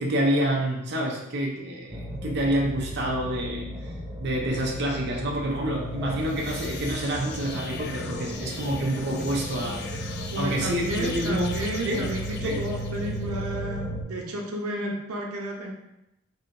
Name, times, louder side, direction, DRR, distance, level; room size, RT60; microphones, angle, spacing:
voice 1, 0.0-3.9 4.2-9.8 10.4-11.6 11.9-12.0 12.4-12.6, right 1 dB, 50° right, -2 dB, 0.6 m, -28 dB
sound 1, 1.9-14.0, equal, 10° right, 0.5 m, -35 dB
sound 2, 6.0-13.5, left 5 dB, 50° left, 0.3 m, -41 dB
voice 2, 10.3-15.7, right 1 dB, 90° right, 0 dB, 0.7 m, -32 dB
4.7 x 2.8 x 2.6 m, 0.87 s
head